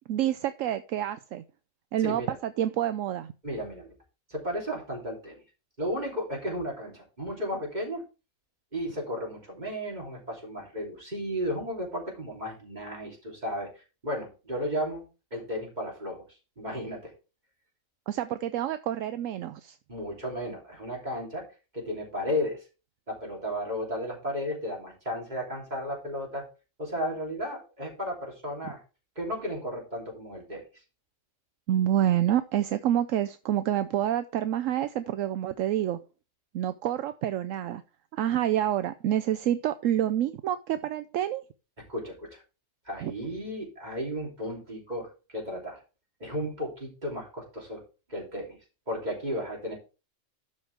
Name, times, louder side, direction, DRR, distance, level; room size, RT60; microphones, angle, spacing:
voice 1, 0.1-1.4 1.9-3.3 18.1-19.7 31.7-36.0 36.5-37.8 38.1-41.4 43.0-43.1, right 11 dB, 75° right, 11 dB, 0.9 m, -28 dB
voice 2, 2.0-2.3 3.4-3.9 4.3-5.4 5.8-8.0 8.7-15.0 15.3-16.2 16.6-17.1 19.9-21.4 21.7-22.6 23.1-26.4 26.8-28.8 29.1-30.6 41.9-42.4 42.8-45.8 46.2-47.8 48.1-48.6 48.9-49.7, equal, 35° right, -2 dB, 3.3 m, -34 dB
12.0 x 5.4 x 3.4 m, 0.32 s
omnidirectional pair, 1.4 m